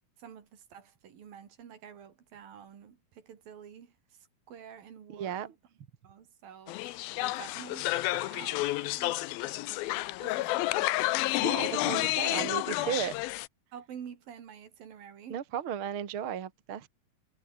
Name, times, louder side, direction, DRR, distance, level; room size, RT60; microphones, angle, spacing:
voice 1, 0.2-3.9 4.5-5.5 6.0-9.2 9.9-11.9 12.4-13.0 13.7-15.4, right 8 dB, 70° right, 4.4 m, -48 dB
voice 2, 5.1-5.5 11.4-13.1 15.3-16.9, right 9 dB, 45° right, 2.0 m, -35 dB
sound 1, 6.7-13.5, left 19 dB, 85° left, 2.5 m, -30 dB
omnidirectional pair, 4.3 m